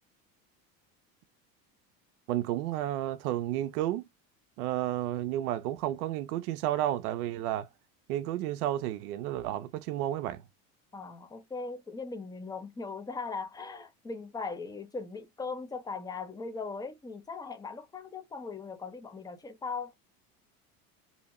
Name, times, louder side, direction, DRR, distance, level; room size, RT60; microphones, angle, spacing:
voice 1, 2.3-4.1 4.6-7.7 8.1-10.4, right 13 dB, 85° right, 0.5 m, -31 dB
voice 2, 10.9-19.9, left 4 dB, 10° left, 0.5 m, -39 dB
2.7 x 2.1 x 2.8 m
hypercardioid pair, 90°, 44 cm